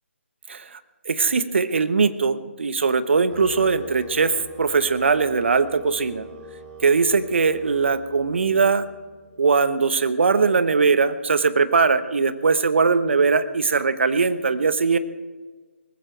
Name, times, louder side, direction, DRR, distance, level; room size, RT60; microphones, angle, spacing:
voice 1, 0.5-0.8 1.0-6.3 6.8-8.8 9.4-15.0, right 5 dB, 60° right, 12 dB, 1.1 m, -20 dB
sound 1, 3.3-9.4, right 1 dB, 25° right, 4.6 m, -43 dB
19.0 x 15.5 x 4.6 m, 1.3 s
figure-of-eight pair, 150°, 7 cm